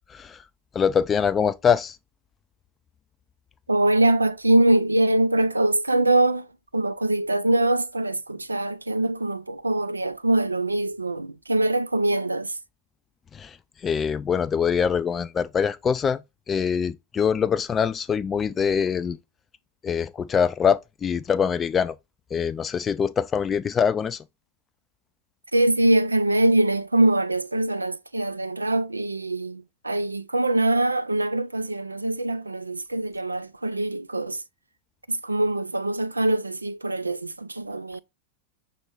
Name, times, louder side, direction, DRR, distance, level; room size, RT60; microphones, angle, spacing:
voice 1, 0.7-2.0 13.3-13.6 13.8-16.2 16.5-19.2 19.8-21.9 22.3-24.2, left 7 dB, 20° left, 0.4 m, -24 dB
voice 2, 3.7-6.5 6.7-12.6 25.5-34.4 35.1-38.0, right 1 dB, 80° right, 0.4 m, -23 dB
5.9 x 2.5 x 3.4 m
figure-of-eight pair, 90°, 0 cm